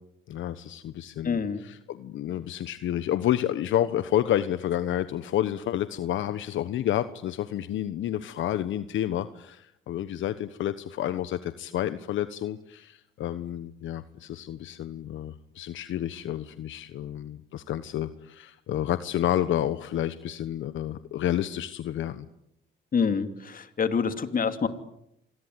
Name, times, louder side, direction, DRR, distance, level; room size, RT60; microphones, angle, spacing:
voice 1, 0.3-22.2, left 12 dB, 75° left, 13 dB, 1.2 m, -30 dB
voice 2, 1.2-1.6 22.9-24.7, left 6 dB, 45° left, 9 dB, 2.8 m, -26 dB
27.0 x 20.5 x 9.7 m, 0.79 s
cardioid pair, 90°, 20 cm